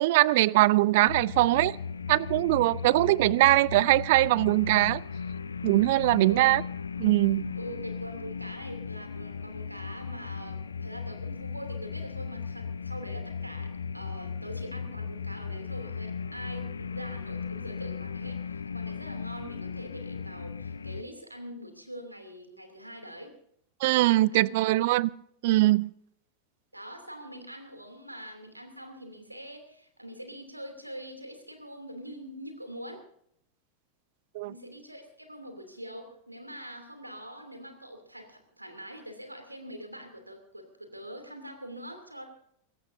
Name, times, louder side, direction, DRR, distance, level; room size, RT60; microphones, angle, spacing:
voice 1, 0.0-1.8 2.1-5.0 5.6-6.6 7.0-7.4 23.8-25.1 25.4-25.9 34.3-34.5, right 18 dB, 50° right, 24 dB, 0.5 m, -22 dB
sound 1, 1.0-21.0, left 5 dB, 75° left, 0.6 m, -37 dB
voice 2, 6.2-6.5 7.6-23.4 23.8-24.7 26.7-33.0 34.5-42.2, equal, 85° right, 6 dB, 2.8 m, -44 dB
22.0 x 17.5 x 2.7 m, 0.68 s
figure-of-eight pair, 90°, 0 cm